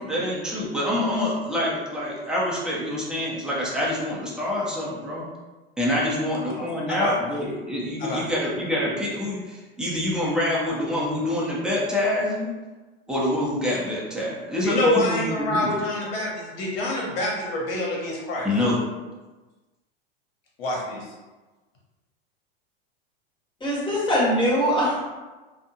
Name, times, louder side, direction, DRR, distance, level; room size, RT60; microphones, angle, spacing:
voice 1, 0.0-5.3 5.8-12.5 13.1-15.7 18.4-18.9, left 1 dB, ahead, -6 dB, 0.7 m, -26 dB
voice 2, 6.7-7.1 8.0-8.2 14.6-18.5 20.6-21.1, left 1 dB, 70° left, -3 dB, 1.1 m, -26 dB
voice 3, 23.6-25.0, equal, 15° left, -6 dB, 1.1 m, -22 dB
2.6 x 2.3 x 2.7 m, 1.2 s
hypercardioid pair, 105°, 31 cm